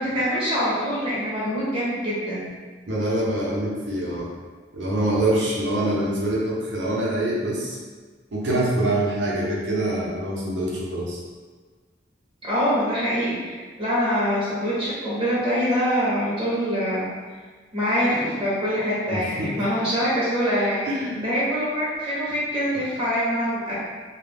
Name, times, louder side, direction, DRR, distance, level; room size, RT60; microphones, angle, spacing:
voice 1, 0.0-2.5 12.4-17.1 17.7-20.8 21.2-23.7, equal, 30° right, -9 dB, 0.7 m, -24 dB
voice 2, 2.9-4.3 4.7-7.8 8.3-11.2 19.1-19.5 20.8-21.3, right 1 dB, 75° right, -5 dB, 0.7 m, -25 dB
2.2 x 2.2 x 3.3 m, 1.4 s
head